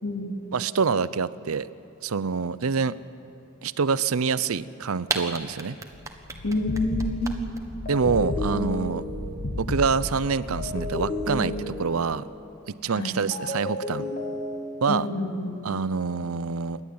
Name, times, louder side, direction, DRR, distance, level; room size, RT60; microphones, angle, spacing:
voice 1, 0.0-0.3 6.4-7.4 12.9-13.2 14.9-15.6, left 2 dB, 85° left, 2 dB, 2.8 m, -28 dB
voice 2, 0.5-1.7 2.0-3.0 3.6-5.8 7.9-9.0 9.6-12.2 12.8-14.0 14.8-15.1 15.6-16.8, right 5 dB, 85° right, 16 dB, 0.6 m, -26 dB
sound 1, 5.1-7.6, right 3 dB, 15° right, 1.3 m, -31 dB
sound 2, 5.9-12.0, left 1 dB, 65° left, 1.4 m, -34 dB
sound 3, 6.5-6.8 7.9-9.6 10.6-12.3 13.3-15.0, left 2 dB, 40° left, 2.0 m, -33 dB
28.0 x 11.5 x 8.6 m, 2.9 s
head